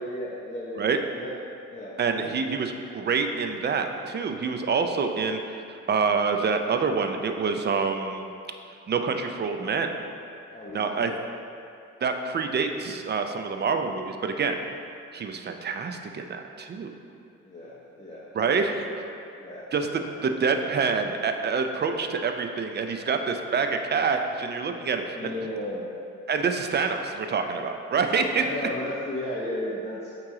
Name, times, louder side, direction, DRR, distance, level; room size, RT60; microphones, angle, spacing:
voice 1, 0.0-1.4 1.7-2.3 10.5-11.2 17.4-19.1 19.4-19.7 20.0-20.1 25.1-25.9 28.3-30.1, left 1 dB, 25° left, -7 dB, 0.9 m, -35 dB
voice 2, 2.0-8.3 8.9-9.9 10.7-11.1 12.0-14.6 15.1-16.9 18.3-18.9 19.7-19.9 20.2-25.3 26.3-28.4, right 5 dB, 35° right, 5 dB, 0.5 m, -26 dB
8.4 x 3.0 x 3.8 m, 2.5 s
cardioid pair, 90°, 30 cm